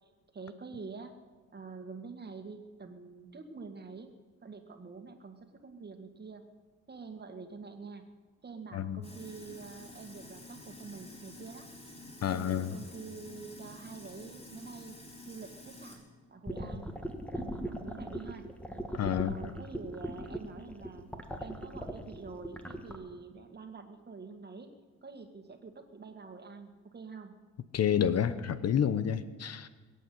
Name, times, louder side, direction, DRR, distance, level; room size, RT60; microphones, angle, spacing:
voice 1, 0.3-1.2 1.5-4.1 4.4-6.4 6.9-8.1 8.4-11.7 12.3-15.0 15.3-16.0 16.3-16.9 17.3-18.5 19.2-21.1 21.4-24.7 25.0-27.3, right 4 dB, 35° right, 6 dB, 1.9 m, -46 dB
Sink (filling or washing), 9.0-16.0, left 1 dB, 20° left, 4.5 m, -50 dB
voice 2, 12.2-12.8 18.9-19.5 27.7-29.7, left 9 dB, 55° left, 14 dB, 0.9 m, -29 dB
sound 1, 16.5-23.0, right 1 dB, 5° left, 1.7 m, -38 dB
20.5 x 8.5 x 7.8 m, 1.4 s
cardioid pair, 90°, 30 cm